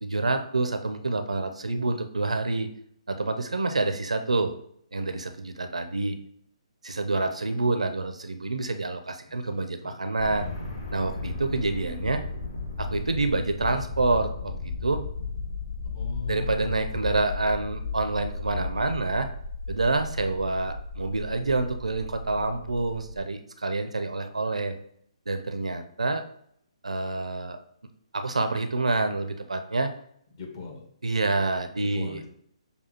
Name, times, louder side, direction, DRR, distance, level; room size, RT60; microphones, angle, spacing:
voice 1, 0.0-2.7 3.1-4.5 4.9-6.2 6.8-10.5 10.9-12.2 12.8-15.0 16.3-19.3 19.7-24.8 25.3-26.2 26.8-27.6 28.1-29.9 31.0-32.2, right 3 dB, 90° right, 7 dB, 0.5 m, -27 dB
voice 2, 9.3-10.0 15.8-16.9 30.3-30.9 31.8-32.3, left 5 dB, 45° left, 2 dB, 1.2 m, -40 dB
sound 1, 10.2-23.2, left 3 dB, 60° left, 1.8 m, -35 dB
6.7 x 2.3 x 2.9 m, 0.68 s
figure-of-eight pair, 140°, 3 cm